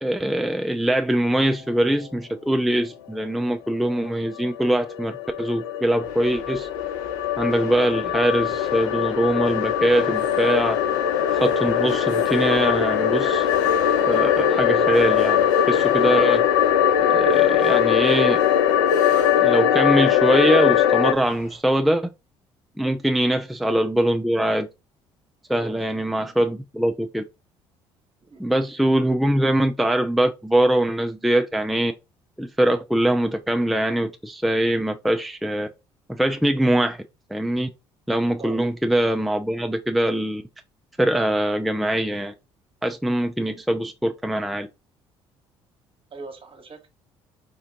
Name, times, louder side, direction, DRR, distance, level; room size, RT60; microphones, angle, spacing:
voice 1, 0.0-6.7 7.4-10.8 11.3-13.5 14.1-16.4 17.0-18.4 19.4-22.1 22.8-24.7 25.5-27.2 28.4-31.9 32.4-35.7 36.1-37.0 37.3-37.7 38.1-40.4 41.0-42.3 42.8-44.7, right 1 dB, ahead, 0.4 m, -22 dB
sound 1, 3.9-21.1, left 9 dB, 85° left, 0.4 m, -21 dB
sound 2, 6.0-21.6, left 2 dB, 55° left, 1.7 m, -39 dB
voice 2, 25.6-26.0 28.2-28.4 38.4-38.6 46.1-46.9, right 3 dB, 40° right, 1.2 m, -40 dB
4.4 x 2.4 x 2.8 m
hypercardioid pair, 55°, 14 cm